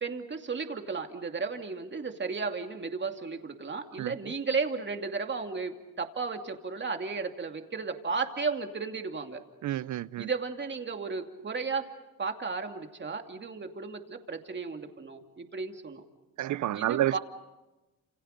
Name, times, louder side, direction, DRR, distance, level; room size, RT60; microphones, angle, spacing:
voice 1, 0.0-9.4 10.2-11.9 12.2-16.0 16.7-17.2, right 4 dB, 30° right, 2.6 m, -34 dB
voice 2, 9.6-10.3 16.4-17.1, right 13 dB, 55° right, 0.7 m, -29 dB
29.0 x 27.5 x 5.3 m
supercardioid pair, 80°, 36 cm